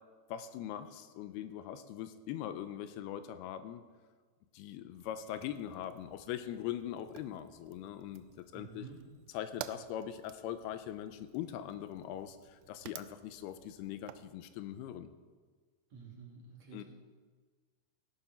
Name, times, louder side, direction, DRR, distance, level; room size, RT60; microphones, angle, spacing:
voice 1, 0.3-3.8 4.5-8.9 9.3-15.1 16.7-16.8, left 11 dB, 85° left, 10 dB, 2.6 m, -41 dB
Fire, 5.0-14.3, right 13 dB, 90° right, 2.7 m, -53 dB
voice 2, 8.5-9.0 15.9-16.8, right 5 dB, 50° right, -1 dB, 2.6 m, -50 dB
16.0 x 11.5 x 4.4 m, 1.5 s
omnidirectional pair, 4.6 m